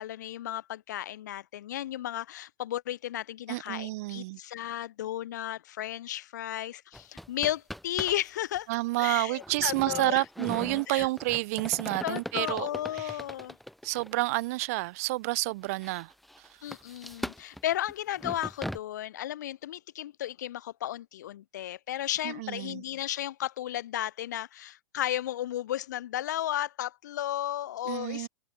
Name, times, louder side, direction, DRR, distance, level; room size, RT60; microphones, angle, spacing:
voice 1, 0.0-8.7 9.0-10.2 10.9-11.1 12.0-13.6 16.6-28.3, left 12 dB, 60° left, 0.9 m, -34 dB
voice 2, 3.5-4.4 8.7-12.7 13.0-13.1 13.8-16.1 22.2-22.8 27.9-28.3, right 21 dB, 45° right, 0.6 m, -29 dB
sound 1, 6.9-8.3 8.6-8.7 9.4-14.2 14.8-14.9 15.5-18.8, equal, ahead, 0.9 m, -40 dB
figure-of-eight pair, 95°, 11 cm